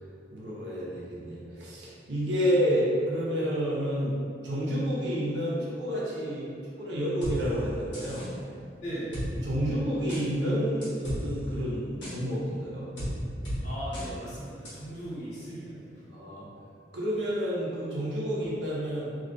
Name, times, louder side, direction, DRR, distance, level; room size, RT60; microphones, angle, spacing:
voice 1, 0.3-4.2 4.4-8.3 9.4-12.9 16.1-16.5 16.9-19.0, equal, 70° right, -6 dB, 0.6 m, -29 dB
sound 1, 7.2-7.4 7.9-8.3 9.1-9.3 10.1-10.2 10.8-11.2 12.0-12.1 13.0-13.1 13.4-13.6 13.9-14.1 14.6-14.7, equal, 85° left, 1.0 m, -34 dB
voice 2, 8.8-9.1 13.6-16.0, right 1 dB, 40° left, -9 dB, 0.8 m, -38 dB
2.3 x 2.2 x 2.6 m, 2.4 s
head